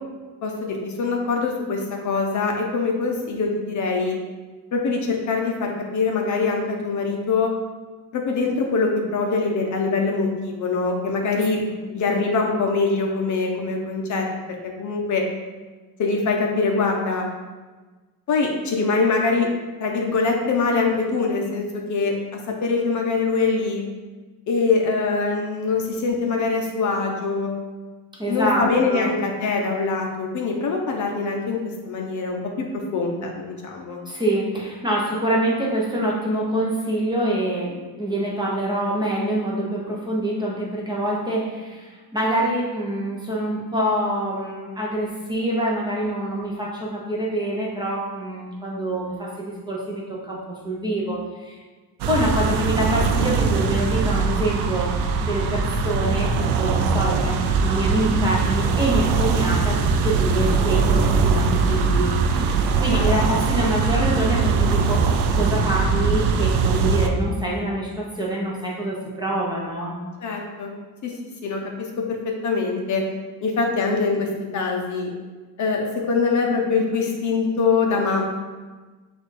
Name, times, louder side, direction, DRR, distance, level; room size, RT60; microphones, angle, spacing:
voice 1, 0.4-4.2 4.7-7.5 8.1-11.6 11.9-14.3 14.8-15.2 16.0-17.3 18.3-19.5 19.8-21.6 21.9-23.8 24.5-27.5 28.3-31.6 31.8-34.0 62.9-63.1 70.2-70.7 71.0-71.1 71.4-72.2 72.4-73.0 73.4-75.1 75.6-78.2, left 4 dB, 50° left, 1 dB, 0.6 m, -23 dB
voice 2, 28.2-29.1 34.1-51.6 52.1-65.0 65.3-70.0, right 1 dB, 10° right, -4 dB, 0.6 m, -25 dB
sound 1, 52.0-67.1, right 4 dB, 90° right, 0.5 m, -21 dB
6.2 x 2.5 x 3.2 m, 1.3 s
cardioid pair, 155°, 39 cm